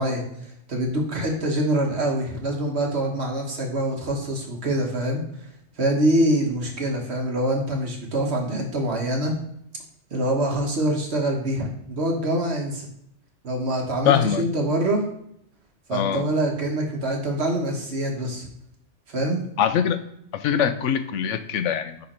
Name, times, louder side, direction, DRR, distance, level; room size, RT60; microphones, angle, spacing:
voice 1, 0.0-5.2 5.8-9.4 10.1-12.9 13.4-15.1 15.9-18.5 19.1-19.4, right 1 dB, 65° right, 1 dB, 1.7 m, -25 dB
voice 2, 14.0-14.4 15.9-16.3 19.6-20.0 20.3-22.0, left 8 dB, 90° left, 10 dB, 1.0 m, -22 dB
9.6 x 3.8 x 4.3 m, 0.71 s
omnidirectional pair, 1.2 m